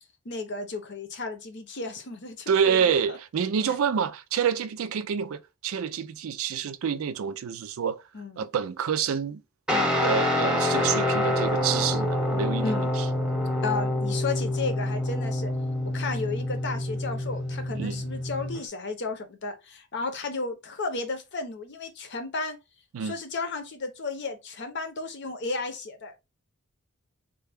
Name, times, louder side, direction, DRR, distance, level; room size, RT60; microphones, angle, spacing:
voice 1, 0.2-2.8 3.1-3.2 8.1-8.4 9.7-9.9 12.6-12.9 13.6-15.5 15.8-22.6 23.0-26.2, left 3 dB, 60° left, 0.7 m, -33 dB
voice 2, 2.5-8.0 8.4-9.4 10.0-13.0 17.8-18.0 22.9-23.2, right 7 dB, 90° right, 0.4 m, -27 dB
Guitar, 9.7-18.6, left 1 dB, 5° right, 0.7 m, -27 dB
3.3 x 2.2 x 3.4 m
head